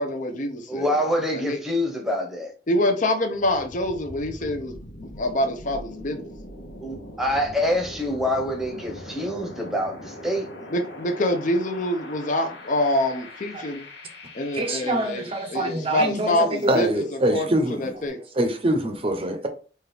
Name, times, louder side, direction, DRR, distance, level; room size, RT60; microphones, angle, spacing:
voice 1, 0.0-1.0 1.3-1.6 2.7-6.3 10.7-13.8 14.3-17.0 17.3-17.5 17.8-18.2, left 1 dB, 45° left, 0.6 m, -26 dB
voice 2, 0.7-2.5 6.8-10.7, left 1 dB, ahead, 0.9 m, -26 dB
sound 1, 3.3-17.1, left 1 dB, 85° left, 1.0 m, -42 dB
voice 3, 14.5-18.0 18.3-19.5, right 1 dB, 30° right, 0.7 m, -24 dB
4.2 x 2.4 x 3.3 m
head